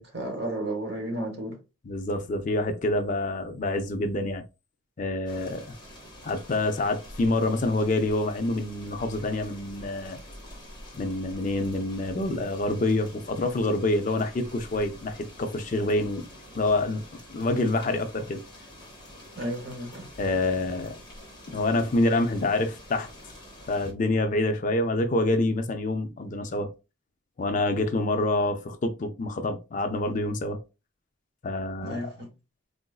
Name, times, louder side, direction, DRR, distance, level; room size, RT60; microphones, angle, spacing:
voice 1, 0.0-1.6 19.4-20.0 31.8-32.3, right 1 dB, 50° right, 1.1 m, -33 dB
voice 2, 1.9-4.4 5.0-5.7 6.2-10.2 10.9-16.3 16.5-17.0 17.3-18.4 20.2-21.0 21.5-23.1 23.7-26.7 27.4-30.6 31.4-32.1, left 2 dB, 35° left, 0.4 m, -27 dB
sound 1, 5.3-23.9, left 1 dB, 20° left, 0.9 m, -47 dB
3.8 x 2.5 x 2.3 m
head